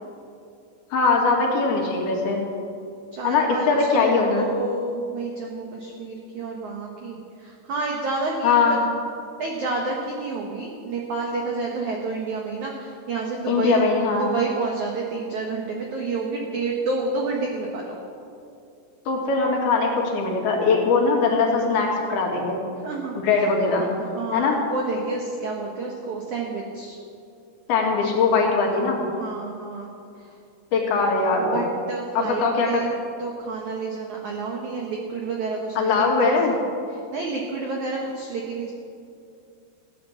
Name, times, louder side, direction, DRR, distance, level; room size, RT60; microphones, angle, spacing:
voice 1, 0.9-2.5 3.2-4.5 8.4-8.8 13.5-14.3 19.1-22.6 23.1-23.8 24.3-24.6 27.7-29.0 30.7-31.6 32.1-32.8 35.8-36.6, left 4 dB, 60° left, 0 dB, 3.4 m, -21 dB
voice 2, 3.1-4.1 4.4-8.8 9.4-13.8 14.2-18.0 22.8-23.4 23.8-27.0 29.2-29.9 30.2-30.3 31.4-32.9 33.2-36.4 36.9-38.7, right 3 dB, 85° right, 0 dB, 1.7 m, -29 dB
15.5 x 9.7 x 7.1 m, 2.5 s
omnidirectional pair, 5.4 m